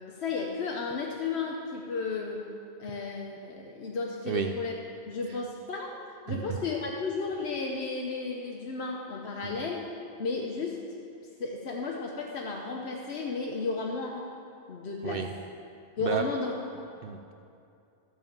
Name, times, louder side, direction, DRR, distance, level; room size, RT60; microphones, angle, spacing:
voice 1, 0.0-2.4 2.8-4.7 5.1-5.9 6.3-9.9 10.2-10.8 11.4-14.3 14.7-15.2 16.0-16.9, left 4 dB, 75° left, 0 dB, 1.1 m, -33 dB
voice 2, 6.3-6.6 9.4-9.6 15.0-15.3 16.0-16.2 17.0-17.3, right 7 dB, 60° right, 5 dB, 0.7 m, -32 dB
14.5 x 5.0 x 7.1 m, 2.6 s
omnidirectional pair, 1.1 m